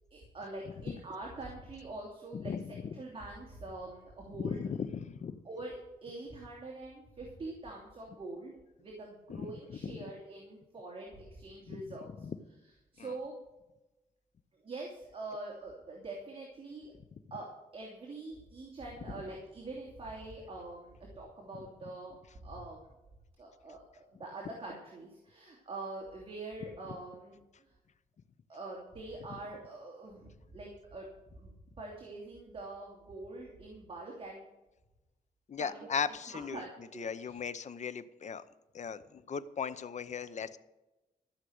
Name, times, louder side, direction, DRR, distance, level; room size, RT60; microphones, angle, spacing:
voice 1, 0.1-4.6 5.4-5.7 6.0-12.3 12.9-13.3 14.6-16.9 17.3-22.2 22.4-22.9 23.4-27.7 28.5-31.1 31.3-34.4 35.6-35.9 36.3-37.4, right 2 dB, 40° right, -2 dB, 2.9 m, -44 dB
voice 2, 2.3-2.8 4.4-5.4 9.8-10.0 11.7-11.8 12.2-12.4 13.0-13.1 35.5-36.6 37.0-38.4 38.7-40.6, left 6 dB, 50° left, 14 dB, 0.8 m, -37 dB
14.5 x 6.6 x 8.0 m, 1.0 s
wide cardioid pair, 135°, 15 cm